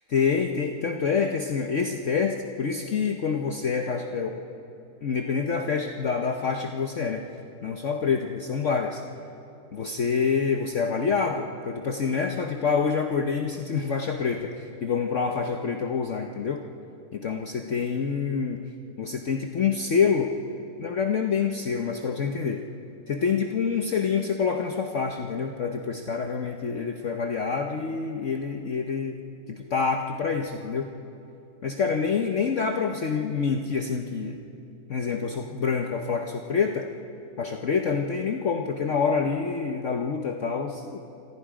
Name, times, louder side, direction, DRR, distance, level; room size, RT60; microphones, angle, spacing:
voice 1, 0.1-4.4 5.0-7.2 7.6-9.0 9.7-16.6 17.1-18.6 19.0-20.3 20.8-22.6 23.1-29.2 29.5-30.9 31.6-34.4 34.9-36.9 37.4-41.0, left 5 dB, 50° left, 3 dB, 1.3 m, -27 dB
29.0 x 26.5 x 5.0 m, 2.8 s
omnidirectional pair, 1.7 m